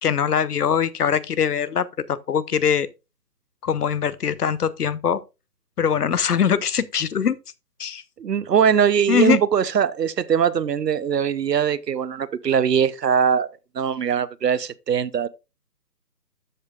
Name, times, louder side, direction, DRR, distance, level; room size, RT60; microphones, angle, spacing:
voice 1, 0.0-2.9 3.6-5.2 5.8-7.4 7.8-8.0 9.1-9.4, left 7 dB, 65° left, 0.8 m, -22 dB
voice 2, 8.2-15.3, right 7 dB, 75° right, 0.7 m, -21 dB
13.5 x 5.3 x 2.3 m
figure-of-eight pair, 150°, 49 cm